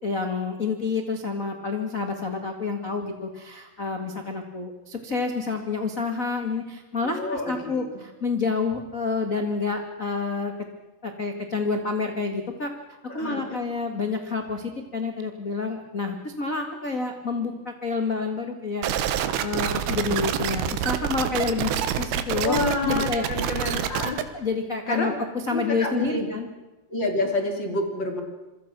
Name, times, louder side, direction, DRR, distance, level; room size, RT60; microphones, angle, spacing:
voice 1, 0.0-10.5 11.0-18.8 19.4-23.8 24.3-25.1 25.5-26.5, left 4 dB, 80° left, 4 dB, 0.7 m, -29 dB
voice 2, 7.0-7.9 13.1-13.6 22.4-24.2 24.9-25.1 25.5-26.3 26.9-28.2, left 2 dB, 30° left, 4 dB, 3.1 m, -28 dB
sound 1, 18.8-24.2, right 10 dB, 80° right, 3.4 m, -27 dB
27.0 x 23.5 x 6.1 m, 1.1 s
omnidirectional pair, 4.9 m